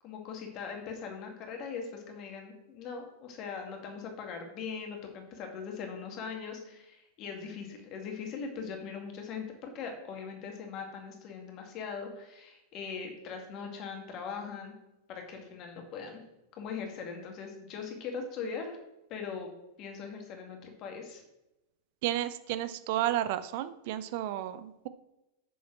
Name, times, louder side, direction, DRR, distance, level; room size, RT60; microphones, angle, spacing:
voice 1, 0.0-14.7 15.1-16.2 16.6-18.8 19.1-19.5 19.8-21.2, left 5 dB, 35° left, 3 dB, 2.1 m, -40 dB
voice 2, 22.0-24.9, right 13 dB, 50° right, 13 dB, 0.5 m, -32 dB
7.2 x 7.1 x 6.0 m, 0.94 s
figure-of-eight pair, 90°, 0 cm